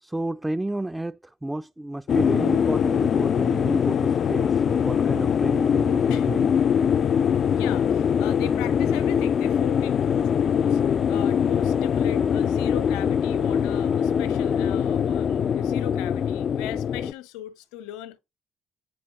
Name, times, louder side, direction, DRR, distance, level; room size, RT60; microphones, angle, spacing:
voice 1, 0.0-6.5, right 1 dB, 10° right, 0.4 m, -31 dB
sound 1, 2.1-17.1, left 8 dB, 55° left, 0.3 m, -22 dB
voice 2, 7.5-10.8 11.1-18.2, left 11 dB, 75° left, 1.0 m, -38 dB
8.7 x 4.2 x 4.7 m
hypercardioid pair, 50°, 0 cm